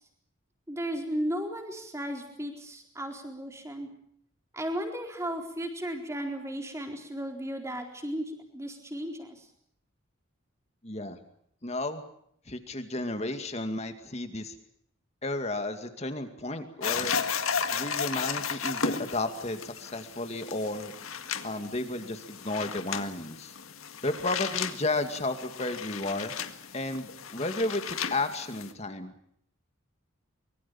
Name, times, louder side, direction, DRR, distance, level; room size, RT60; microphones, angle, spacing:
voice 1, 0.7-3.9 4.5-9.5, equal, 15° right, 3 dB, 4.1 m, -35 dB
voice 2, 10.8-11.2 11.6-12.0 12.5-14.6 15.2-17.1 17.7-20.9 21.4-23.5 24.0-26.3 26.7-29.1, left 2 dB, 30° left, 7 dB, 2.3 m, -33 dB
sound 1, 16.8-28.7, left 6 dB, 90° left, 1.9 m, -34 dB
25.0 x 23.0 x 7.2 m, 0.69 s
head